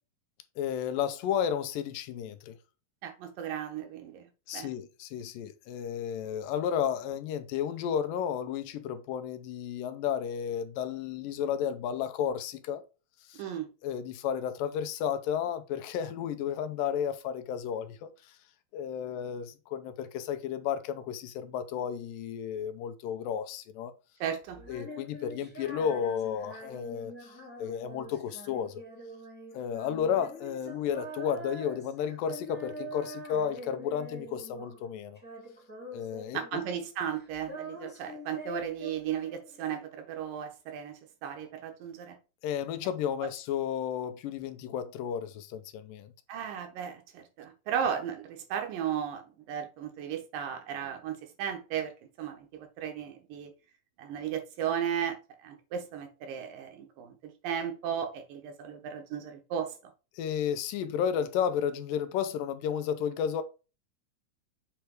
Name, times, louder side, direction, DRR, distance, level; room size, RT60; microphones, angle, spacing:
voice 1, 0.6-2.6 4.5-12.8 13.3-13.4 13.8-18.1 18.7-23.9 24.7-27.3 27.6-28.8 29.5-35.2 35.9-36.4 42.4-46.1 60.2-63.4, left 8 dB, 90° left, 2.4 m, -32 dB
voice 2, 3.0-4.7 13.3-13.7 24.2-24.7 36.3-42.2 46.3-51.9 52.2-53.5 54.0-59.8, right 8 dB, 85° right, 2.9 m, -35 dB
Female singing, 24.6-34.9 35.2-36.8 37.1-39.8, right 1 dB, 5° left, 1.6 m, -45 dB
7.5 x 3.4 x 4.6 m
omnidirectional pair, 3.9 m